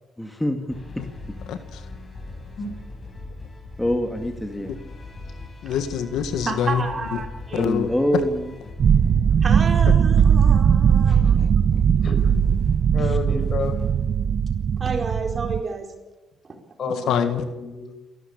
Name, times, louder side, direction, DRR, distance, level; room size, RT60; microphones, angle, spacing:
voice 1, 0.2-1.0 3.8-4.7 7.6-8.5 11.1-11.8, equal, 5° left, 5 dB, 2.1 m, -26 dB
sound 1, 0.7-14.7, left 2 dB, 30° left, 5.1 m, -40 dB
voice 2, 1.5-1.8 5.6-6.8 7.1-7.2 7.5-7.9 12.3-12.5 17.1-17.4, left 8 dB, 85° left, 9 dB, 1.7 m, -25 dB
voice 3, 6.4-7.7 9.4-11.4 11.8-11.9 14.8-15.9 16.4-16.6, right 4 dB, 40° right, 3 dB, 4.3 m, -30 dB
sound 2, 8.8-15.6, right 7 dB, 55° right, 0.7 m, -19 dB
voice 4, 12.0-12.3 12.9-13.8 16.8-17.9, left 4 dB, 55° left, 6 dB, 5.7 m, -30 dB
29.0 x 12.5 x 8.7 m, 1.1 s
cardioid pair, 90°, 0 cm